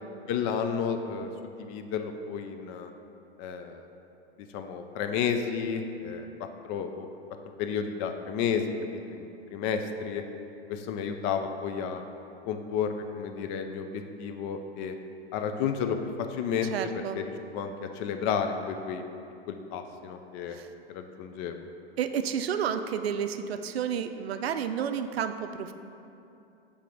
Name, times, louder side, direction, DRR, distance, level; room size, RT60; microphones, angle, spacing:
voice 1, 0.3-2.9 3.4-3.9 4.5-6.3 6.6-7.1 7.6-8.6 8.9-10.2 10.7-12.0 12.5-14.9 15.3-19.0 19.5-20.6 20.9-21.6, left 7 dB, 35° left, 6 dB, 0.4 m, -32 dB
voice 2, 16.7-17.2 20.5-20.7 22.0-25.7, right 8 dB, 75° right, 9 dB, 0.5 m, -31 dB
7.4 x 3.4 x 5.0 m, 2.7 s
hypercardioid pair, 105°, 31 cm